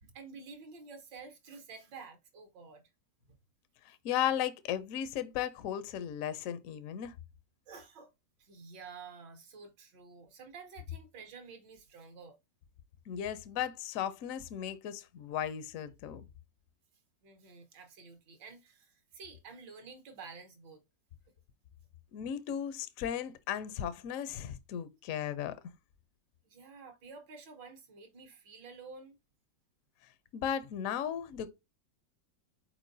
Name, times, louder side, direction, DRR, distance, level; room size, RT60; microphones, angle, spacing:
voice 1, 0.0-2.8 3.3-3.4 7.7-8.1 8.4-12.4 17.2-20.8 26.4-29.2, right 4 dB, 75° right, 1.8 m, -50 dB
voice 2, 3.9-7.1 13.1-16.2 22.1-25.7 30.3-31.5, left 10 dB, 70° left, 0.8 m, -36 dB
4.6 x 4.4 x 2.6 m
omnidirectional pair, 2.0 m